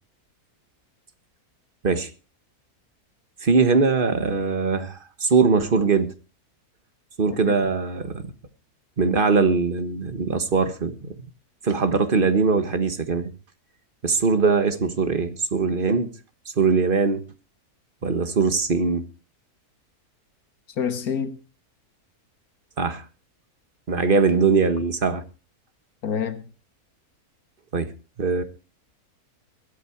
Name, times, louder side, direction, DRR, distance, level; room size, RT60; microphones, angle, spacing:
voice 1, 3.4-6.1 7.2-8.2 9.0-11.3 11.6-13.3 14.0-16.1 16.6-17.2 18.0-19.1 22.8-23.0 23.9-25.2 27.7-27.9 28.2-28.4, right 4 dB, 35° right, 1.6 m, -21 dB
voice 2, 20.7-21.4 26.0-26.5, left 7 dB, 70° left, 1.8 m, -27 dB
21.5 x 8.7 x 4.6 m
omnidirectional pair, 1.6 m